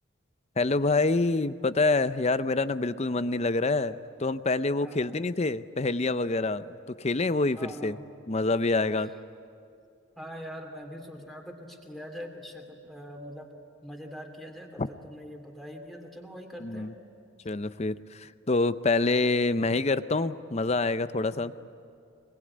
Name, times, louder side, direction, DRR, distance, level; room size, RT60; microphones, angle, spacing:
voice 1, 0.6-8.0 8.3-9.1 14.8-14.9 16.6-16.9 17.4-21.5, left 3 dB, 30° left, 13 dB, 0.6 m, -26 dB
voice 2, 4.8-5.2 7.5-8.1 8.9-9.1 10.2-13.5 13.8-16.9, equal, ahead, 2 dB, 2.8 m, -43 dB
24.5 x 22.5 x 10.0 m, 2.4 s
head